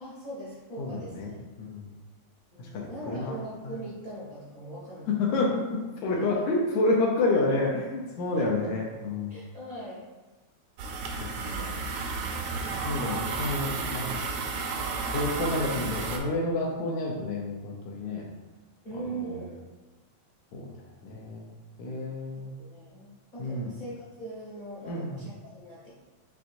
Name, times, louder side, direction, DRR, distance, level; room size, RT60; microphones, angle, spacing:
voice 1, 0.0-1.4 2.5-5.4 6.0-6.4 8.3-8.7 9.3-10.1 11.3-11.6 12.2-13.3 18.8-19.6 22.6-25.9, right 2 dB, 50° left, -7 dB, 0.9 m, -41 dB
voice 2, 0.8-1.3 1.6-1.9 2.6-3.4 3.6-3.8 5.1-9.3 11.6-11.7 12.8-14.1 15.1-18.3 19.1-19.4 20.5-20.7 21.0-21.5 21.8-22.6 23.4-23.7 24.9-25.2, left 2 dB, 75° left, -2 dB, 1.9 m, -29 dB
sound 1, 10.8-16.2, right 4 dB, 90° right, 1.3 m, -32 dB
6.0 x 3.4 x 2.6 m, 1.2 s
omnidirectional pair, 3.3 m